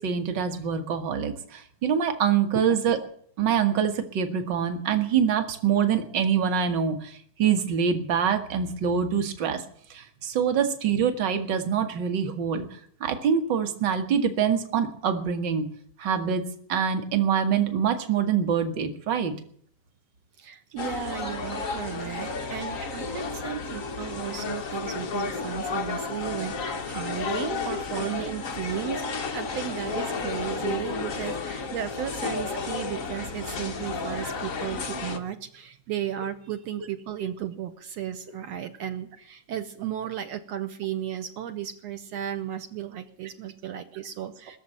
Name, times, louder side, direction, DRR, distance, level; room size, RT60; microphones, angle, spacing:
voice 1, 0.0-3.0 3.4-9.6 9.9-12.7 13.0-15.7 16.0-16.4 16.7-19.3 28.0-28.1, right 7 dB, 45° right, 6 dB, 1.6 m, -25 dB
voice 2, 20.4-44.6, right 10 dB, 70° right, 7 dB, 1.8 m, -34 dB
sound 1, 20.8-35.2, left 4 dB, 85° left, 0.7 m, -32 dB
21.0 x 7.1 x 9.0 m, 0.62 s
omnidirectional pair, 3.6 m